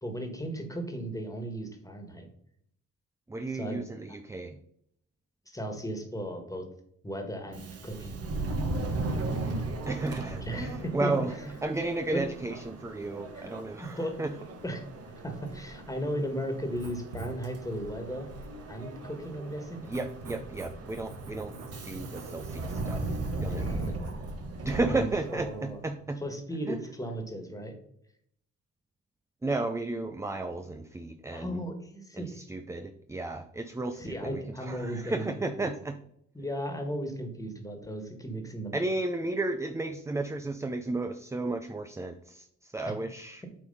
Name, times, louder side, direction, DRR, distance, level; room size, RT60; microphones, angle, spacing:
voice 1, 0.0-2.3 3.5-3.8 5.5-6.7 7.0-8.2 10.1-11.1 12.1-12.3 13.3-13.5 13.8-14.1 14.6-14.8 15.2-18.3 18.7-19.9 23.6-24.1 24.9-25.8 26.2-27.7 31.3-32.4 33.9-35.3 35.6-35.7 36.3-38.8 42.8-42.9, equal, 10° left, 5 dB, 1.7 m, -36 dB
voice 2, 3.3-4.6 9.2-9.5 9.9-11.4 11.6-14.3 19.8-21.5 21.8-24.1 24.6-26.2 26.7-26.8 29.4-31.6 32.1-36.0 38.7-43.4, right 2 dB, 10° right, 8 dB, 0.5 m, -33 dB
Subway metro underground, 7.4-25.8, right 2 dB, 55° right, 1.4 m, -37 dB
Writing, 16.6-24.3, right 2 dB, 90° right, 1.5 m, -45 dB
8.4 x 3.4 x 5.4 m, 0.71 s
cardioid pair, 90°, 30 cm